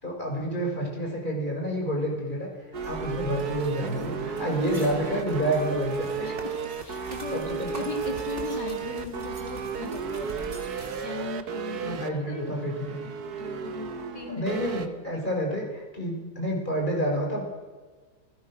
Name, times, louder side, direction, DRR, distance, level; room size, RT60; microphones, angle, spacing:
voice 1, 0.0-2.5 2.8-6.3 7.0-7.9 11.8-13.0 14.3-17.4, equal, 25° left, 0 dB, 6.4 m, -29 dB
Bowed string instrument, 2.5-7.1, left 13 dB, 5° right, 6.1 m, -49 dB
sound 1, 2.7-11.1, right 2 dB, 40° right, 3.2 m, -45 dB
sound 2, 2.7-14.9, right 6 dB, 60° right, 1.8 m, -34 dB
voice 2, 6.2-14.9, left 4 dB, 70° left, 2 dB, 4.1 m, -39 dB
29.5 x 16.0 x 6.6 m, 1.3 s
omnidirectional pair, 1.9 m